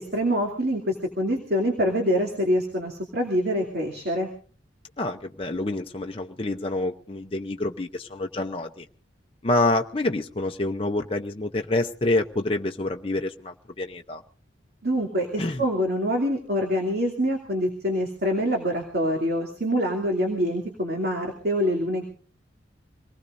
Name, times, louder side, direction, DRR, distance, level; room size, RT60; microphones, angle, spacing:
voice 1, 0.0-4.3 14.8-22.0, equal, 55° right, 1 dB, 2.6 m, -25 dB
voice 2, 5.0-8.9 9.4-14.2 15.4-15.6, left 2 dB, 30° left, 4 dB, 0.7 m, -27 dB
25.5 x 19.0 x 2.6 m, 0.40 s
head